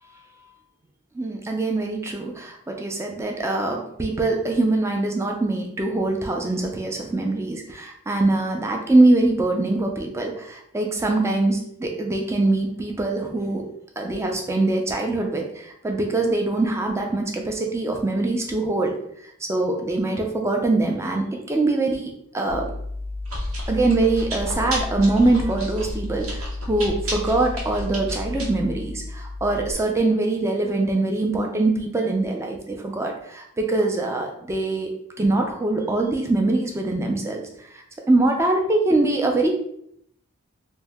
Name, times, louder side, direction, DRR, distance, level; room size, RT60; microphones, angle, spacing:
voice 1, 1.1-13.6 14.0-19.0 19.5-22.7 23.7-37.4 37.7-39.5, right 2 dB, 15° right, 1 dB, 0.3 m, -23 dB
Chewing mastication, 22.5-29.7, left 1 dB, 75° right, 0.9 m, -31 dB
2.7 x 2.0 x 3.3 m, 0.72 s
head